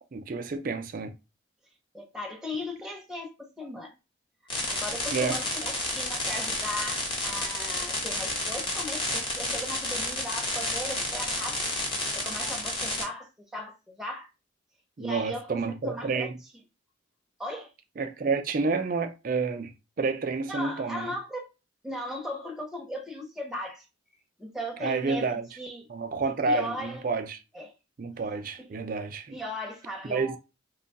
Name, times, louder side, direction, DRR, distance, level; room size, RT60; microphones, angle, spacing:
voice 1, 0.1-1.1 5.1-5.4 15.0-16.4 18.0-21.1 24.8-25.4 25.9-27.4 28.0-29.4 30.0-30.4, right 4 dB, 45° right, 0.4 m, -29 dB
voice 2, 1.9-3.9 4.7-11.6 12.1-14.3 15.0-16.3 17.4-17.7 20.5-21.5 21.8-23.9 24.4-25.9 26.4-27.0 27.5-27.7 28.6-28.7 29.3-30.4, left 1 dB, ahead, 0.7 m, -37 dB
sound 1, 4.5-13.0, left 1 dB, 25° left, 1.0 m, -31 dB
3.0 x 2.3 x 3.9 m
head